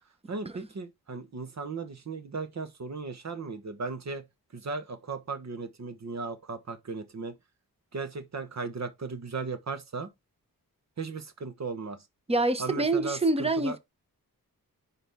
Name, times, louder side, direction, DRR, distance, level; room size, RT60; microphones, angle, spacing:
voice 1, 0.3-4.2 4.5-7.3 7.9-10.1 11.0-12.0 12.6-13.8, right 4 dB, 45° right, 1.2 m, -36 dB
voice 2, 12.3-13.8, right 2 dB, 15° right, 0.9 m, -26 dB
10.0 x 4.2 x 3.6 m
wide cardioid pair, 140°, 36 cm